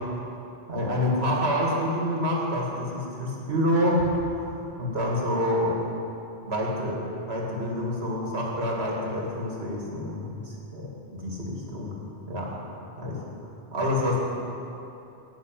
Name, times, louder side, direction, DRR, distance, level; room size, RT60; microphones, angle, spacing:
voice 1, 0.7-5.8 6.4-7.0 7.3-11.9 12.3-12.6 13.0-13.2 13.7-14.2, left 1 dB, 85° right, -2 dB, 2.6 m, -27 dB
12.5 x 7.4 x 9.2 m, 2.8 s
omnidirectional pair, 1.0 m